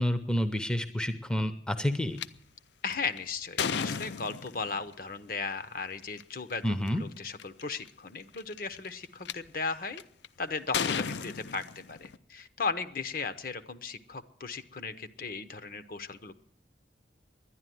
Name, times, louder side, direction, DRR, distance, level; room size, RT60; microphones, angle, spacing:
voice 1, 0.0-2.2 6.6-7.0, equal, 5° left, 9 dB, 0.6 m, -29 dB
sound 1, 2.2-2.3 2.9-4.8 6.0-6.2 6.9-7.0 7.2-7.6 8.3-9.3 10.0-10.3 10.7-12.2, left 6 dB, 75° left, 0.5 m, -33 dB
voice 2, 2.8-10.0 10.4-16.4, left 4 dB, 50° left, 12 dB, 0.8 m, -36 dB
11.5 x 10.5 x 9.3 m, 0.67 s
head